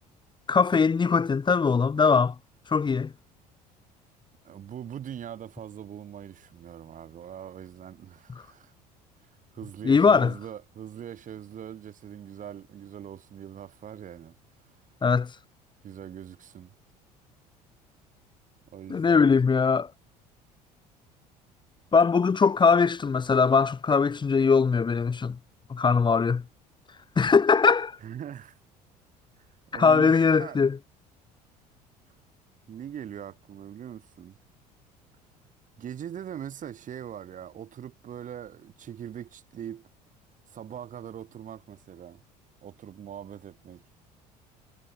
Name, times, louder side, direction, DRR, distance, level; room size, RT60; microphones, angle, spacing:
voice 1, 0.5-2.3 2.7-3.1 9.8-10.3 15.0-15.3 18.9-19.9 21.9-25.4 25.7-26.4 27.2-28.0 29.7-30.8, left 5 dB, 20° left, 1.6 m, -21 dB
voice 2, 4.4-8.7 9.2-9.3 9.5-14.3 15.8-16.7 18.7-19.2 28.0-28.6 29.7-30.6 32.7-34.4 35.8-39.9 40.5-42.2 42.6-43.8, right 9 dB, 40° right, 6.5 m, -41 dB
figure-of-eight pair, 60°, 21 cm